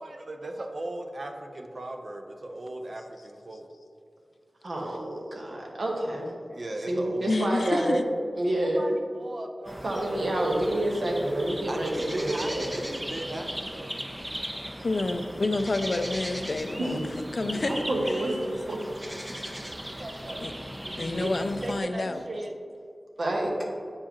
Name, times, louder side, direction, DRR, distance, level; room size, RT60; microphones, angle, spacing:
voice 1, 0.0-3.7 6.5-7.4 8.6-10.5 11.7-13.9 19.8-20.6 21.2-22.6, right 1 dB, 50° right, 4 dB, 0.6 m, -37 dB
voice 2, 4.6-6.3 6.8-8.0 8.4-8.9 9.8-12.7 16.8-17.0 17.4-18.8 19.9-20.1 20.8-21.2 23.2-23.5, right 1 dB, 75° right, -1 dB, 1.1 m, -29 dB
voice 3, 7.3-8.0 14.8-17.0 17.3-17.8 20.4-20.5 21.0-22.2, left 2 dB, 60° left, 8 dB, 0.4 m, -28 dB
sound 1, 9.6-21.8, equal, 10° right, 0.5 m, -38 dB
8.5 x 4.6 x 3.0 m, 2.4 s
wide cardioid pair, 80°, 0 cm